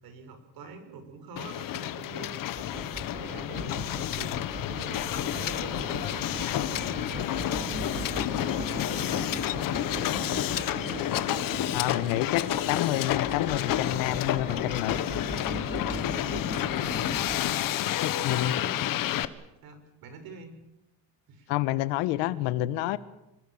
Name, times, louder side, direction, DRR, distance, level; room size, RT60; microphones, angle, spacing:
voice 1, 0.0-6.6 6.9-9.2 9.5-11.0 18.1-19.1 19.6-20.6 21.3-21.6, right 4 dB, 55° right, 8 dB, 6.2 m, -45 dB
Hiss, 1.4-19.2, left 12 dB, 50° left, 1.4 m, -30 dB
sound 1, 2.6-17.4, right 2 dB, 15° right, 5.3 m, -39 dB
voice 2, 11.7-15.0 18.0-18.6 21.5-23.0, left 15 dB, 75° left, 15 dB, 1.5 m, -29 dB
26.5 x 22.0 x 7.4 m, 0.91 s
cardioid pair, 135°, 43 cm